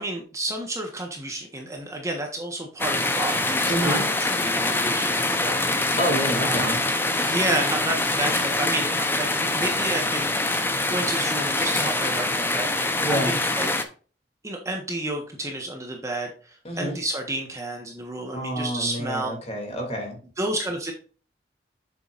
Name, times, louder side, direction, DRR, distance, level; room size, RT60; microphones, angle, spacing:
voice 1, 0.0-4.0 4.4-5.6 6.4-6.8 7.2-13.7 14.4-19.3 20.4-20.9, right 1 dB, 20° right, 2 dB, 1.3 m, -31 dB
sound 1, 2.8-13.8, left 2 dB, 15° left, 0.8 m, -24 dB
voice 2, 3.7-4.0 6.0-6.8 13.0-13.3 16.6-17.0 18.3-20.2, equal, 35° left, 2 dB, 2.8 m, -28 dB
7.7 x 7.0 x 2.6 m, 0.39 s
head